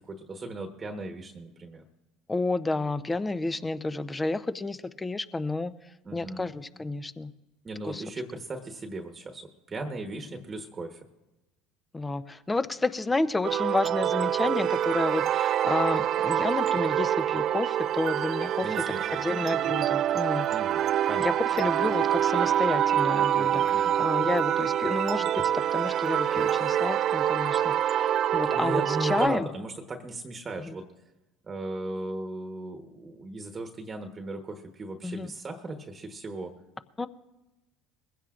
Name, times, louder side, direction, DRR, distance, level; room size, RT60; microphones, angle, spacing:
voice 1, 0.0-1.8 6.0-6.5 7.6-11.0 18.6-19.2 20.5-21.3 21.6-21.7 23.4-24.0 28.5-30.8 31.4-36.5, right 2 dB, 30° right, 5 dB, 1.2 m, -37 dB
voice 2, 2.3-5.7 6.1-7.3 7.8-8.0 11.9-18.7 19.1-20.5 21.2-29.5 30.6-30.7 35.0-35.3 37.0-37.1, left 2 dB, 15° left, 14 dB, 0.7 m, -30 dB
sound 1, 13.4-29.3, right 10 dB, 50° right, 0.3 m, -26 dB
21.5 x 16.0 x 2.5 m, 1.0 s
hypercardioid pair, 80°, 0 cm